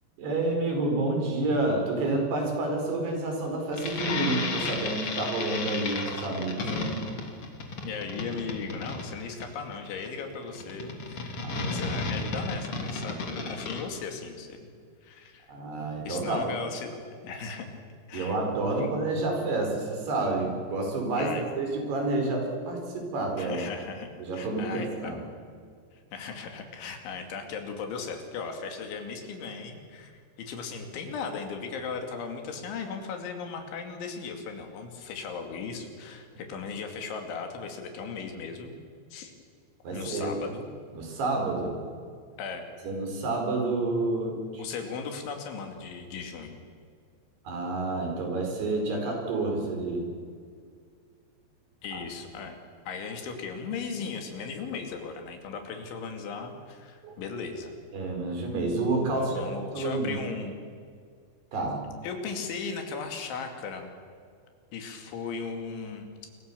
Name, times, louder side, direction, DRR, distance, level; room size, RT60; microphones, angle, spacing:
voice 1, 0.2-6.9 11.4-11.7 15.5-16.5 18.1-23.6 24.2-25.2 39.8-40.4 40.9-41.8 42.8-44.6 47.4-50.1 51.9-52.0 57.0-57.2 57.9-59.5 59.7-60.2 61.5-61.8, right 2 dB, 65° right, 2 dB, 6.8 m, -29 dB
sound 1, 3.7-13.8, left 3 dB, 35° left, 3.3 m, -33 dB
voice 2, 7.8-14.7 15.0-15.5 16.0-16.9 17.2-17.7 18.1-18.4 18.7-18.9 21.2-21.5 23.4-25.1 26.1-38.8 39.1-39.3 39.9-40.7 42.4-42.7 44.6-46.6 51.8-52.6 52.9-57.7 59.1-60.5 62.0-63.9 64.7-66.3, left 5 dB, 90° left, 4 dB, 5.0 m, -37 dB
29.0 x 23.0 x 7.0 m, 2.1 s
omnidirectional pair, 5.2 m